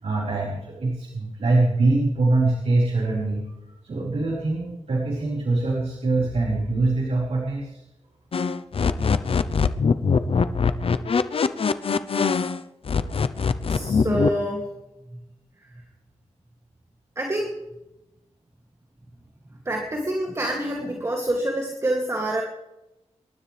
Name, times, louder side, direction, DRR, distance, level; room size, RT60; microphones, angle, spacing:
voice 1, 0.0-7.8, right 2 dB, 65° right, -5 dB, 4.8 m, -23 dB
sound 1, 8.3-12.6 12.8-14.3, left 5 dB, 50° left, 0.7 m, -22 dB
voice 2, 13.7-14.7 15.1-15.2 15.6-15.8 17.2-17.6 19.6-22.4, right 1 dB, 25° right, 0 dB, 2.6 m, -27 dB
26.0 x 13.0 x 3.4 m, 0.92 s
wide cardioid pair, 110°, 12 cm